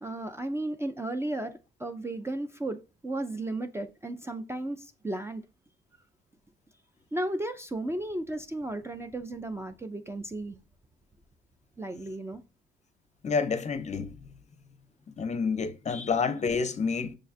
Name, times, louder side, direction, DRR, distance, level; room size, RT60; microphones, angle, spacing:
voice 1, 0.0-5.4 7.1-10.6 11.8-12.4, right 1 dB, 15° right, 0.4 m, -34 dB
voice 2, 13.2-14.2 15.2-17.2, left 5 dB, 35° left, 0.6 m, -28 dB
6.4 x 2.3 x 2.4 m
cardioid pair, 90°, 20 cm